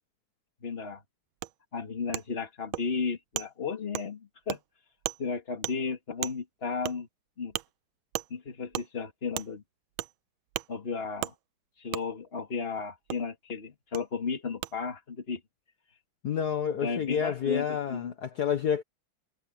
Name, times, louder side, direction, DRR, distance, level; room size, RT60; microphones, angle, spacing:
voice 1, 0.6-1.0 1.7-4.6 5.2-7.1 7.4-7.5 8.3-9.6 10.7-11.3 11.8-15.4 16.8-18.1, left 5 dB, 30° left, 2.1 m, -34 dB
Wood, 1.4-1.5 2.1-2.2 2.7-2.8 3.3-3.5 3.9-4.1 4.5-4.6 5.0-5.2 5.6-5.7 6.2-6.3 6.8-7.0 7.5-7.7 8.1-8.3 8.7-8.9 9.3-9.5 10.0-10.1 10.5-10.7 11.2-11.3 11.9-12.0 13.1-13.2 13.9-14.0 14.6-14.7, right 16 dB, 80° right, 1.4 m, -34 dB
voice 2, 16.2-18.8, left 8 dB, 55° left, 1.7 m, -29 dB
omnidirectional pair, 2.2 m